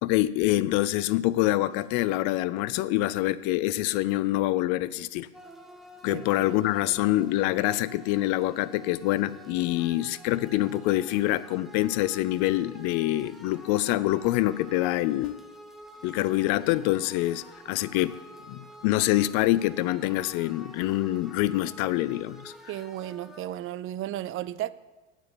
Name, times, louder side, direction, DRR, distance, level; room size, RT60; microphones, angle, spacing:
voice 1, 0.0-5.3 6.0-15.4 16.0-18.2 18.5-22.5, left 16 dB, 55° left, 0.6 m, -26 dB
sound 1, 5.3-23.5, equal, ahead, 1.4 m, -48 dB
voice 2, 22.7-24.7, right 13 dB, 40° right, 0.5 m, -34 dB
8.7 x 7.2 x 8.5 m
hypercardioid pair, 75°, 34 cm